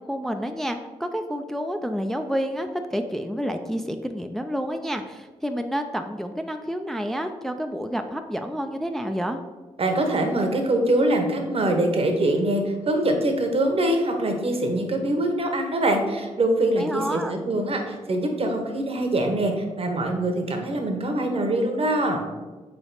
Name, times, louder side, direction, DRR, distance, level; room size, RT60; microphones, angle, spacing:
voice 1, 0.1-9.4 16.8-17.3, equal, 5° left, 6 dB, 0.3 m, -29 dB
voice 2, 9.8-22.2, right 1 dB, 45° right, 4 dB, 0.9 m, -23 dB
3.8 x 3.4 x 3.9 m, 1.3 s
supercardioid pair, 45°, 14 cm